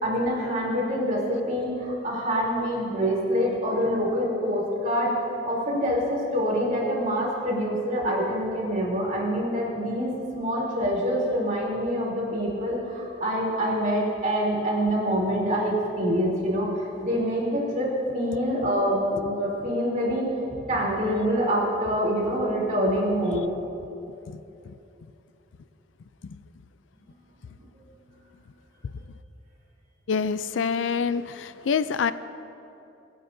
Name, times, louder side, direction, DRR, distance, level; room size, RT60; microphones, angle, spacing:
voice 1, 0.0-23.5, equal, 45° right, -4 dB, 3.3 m, -26 dB
voice 2, 30.1-32.1, left 6 dB, 90° left, 14 dB, 0.4 m, -26 dB
25.0 x 9.4 x 2.7 m, 2.8 s
head